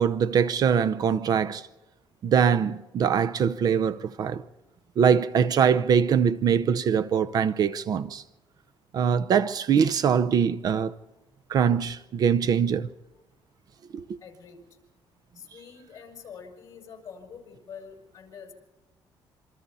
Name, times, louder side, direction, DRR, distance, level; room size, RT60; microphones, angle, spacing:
voice 1, 0.0-1.7 2.2-4.4 5.0-8.2 8.9-10.9 11.5-12.9 13.9-14.2, right 7 dB, 45° right, 0.6 m, -23 dB
voice 2, 14.2-14.6 15.3-18.5, left 6 dB, 35° left, 6.0 m, -45 dB
27.0 x 25.0 x 4.2 m
cardioid pair, 160°, 9 cm